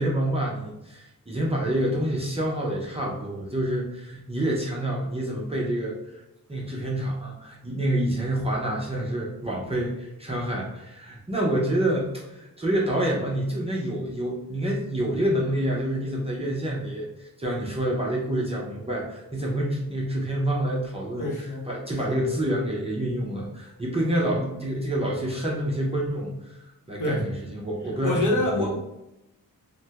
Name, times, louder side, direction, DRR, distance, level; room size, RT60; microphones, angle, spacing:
voice 1, 0.0-6.0 6.5-21.3 21.6-26.3 26.9-28.2 28.5-28.7, right 1 dB, 15° right, -4 dB, 0.5 m, -27 dB
voice 2, 21.2-21.7 22.0-22.3 24.2-24.3 27.0-27.3 28.0-28.7, left 1 dB, 60° left, -2 dB, 0.9 m, -26 dB
3.2 x 2.1 x 2.8 m, 0.93 s
wide cardioid pair, 155°, 35 cm